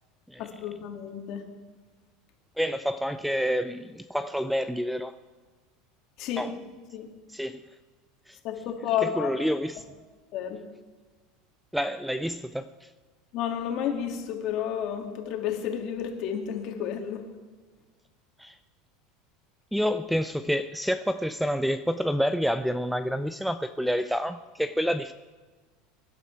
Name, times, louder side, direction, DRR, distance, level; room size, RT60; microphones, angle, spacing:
voice 1, 0.4-1.4 6.2-6.5 6.9-7.1 8.4-9.3 10.3-10.6 13.3-17.2, left 9 dB, 50° left, 2.3 m, -31 dB
voice 2, 2.6-5.2 6.4-6.5 7.3-7.7 8.3-8.4 9.0-9.8 11.7-12.9 18.4-18.6 19.7-25.1, equal, ahead, 0.4 m, -28 dB
23.5 x 11.5 x 4.6 m
supercardioid pair, 150°, 0 cm